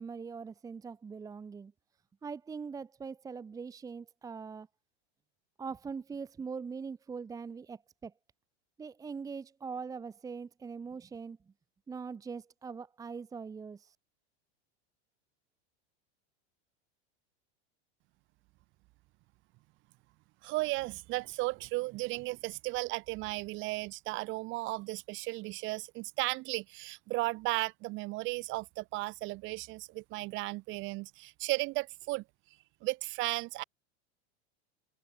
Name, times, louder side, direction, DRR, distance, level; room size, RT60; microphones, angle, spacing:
voice 1, 0.0-1.7 2.2-4.7 5.6-8.1 8.8-11.4 11.9-13.9, right 5 dB, 10° right, 1.3 m, -42 dB
voice 2, 20.4-32.2 32.8-33.6, right 22 dB, 35° right, 2.3 m, -35 dB
supercardioid pair, 170°, 33 cm